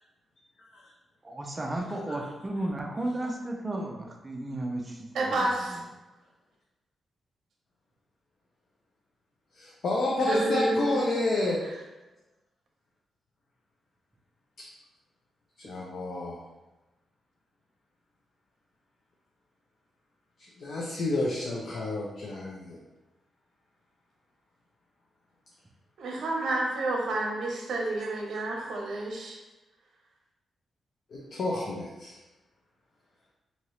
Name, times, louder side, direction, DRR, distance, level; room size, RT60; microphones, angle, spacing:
voice 1, 1.2-5.4 5.7-5.8, right 1 dB, 20° right, 1 dB, 0.3 m, -34 dB
voice 2, 5.1-5.8 10.3-11.2 26.0-29.4, right 2 dB, 65° right, 0 dB, 0.6 m, -29 dB
voice 3, 9.5-11.6 14.6-14.7 15.6-16.4 20.6-22.8 31.1-32.2, left 2 dB, 50° left, -3 dB, 0.4 m, -30 dB
2.8 x 2.7 x 3.0 m, 1.1 s
wide cardioid pair, 170°, 0 cm